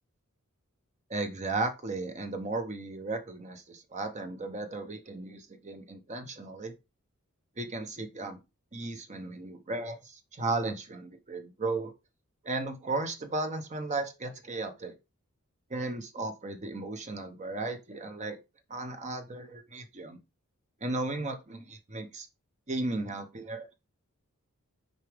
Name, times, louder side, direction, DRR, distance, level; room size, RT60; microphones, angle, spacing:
voice 1, 1.1-6.7 7.6-8.4 8.7-11.9 12.4-14.9 15.7-18.4 18.7-20.2 20.8-22.3 22.7-23.7, right 2 dB, 35° right, 0.8 m, -35 dB
6.5 x 4.8 x 3.4 m
head